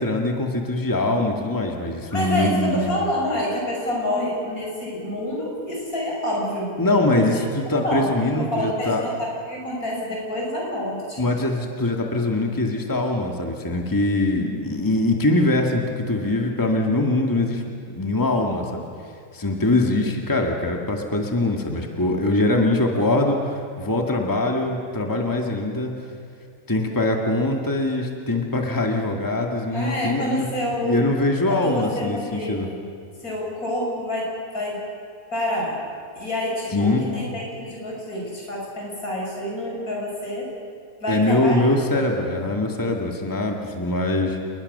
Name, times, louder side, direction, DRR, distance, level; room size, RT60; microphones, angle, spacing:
voice 1, 0.0-2.9 6.8-9.0 11.2-18.8 19.3-25.9 26.7-30.5 30.8-32.7 36.7-37.1 41.1-44.4, left 2 dB, 15° left, 2 dB, 1.9 m, -22 dB
voice 2, 2.1-6.7 7.1-7.4 7.8-11.3 29.7-31.1 31.5-32.7 33.2-34.8 35.3-35.8 36.1-40.5 41.0-41.7, left 1 dB, 75° left, -3 dB, 7.3 m, -28 dB
29.5 x 21.0 x 6.7 m, 2.3 s
omnidirectional pair, 1.5 m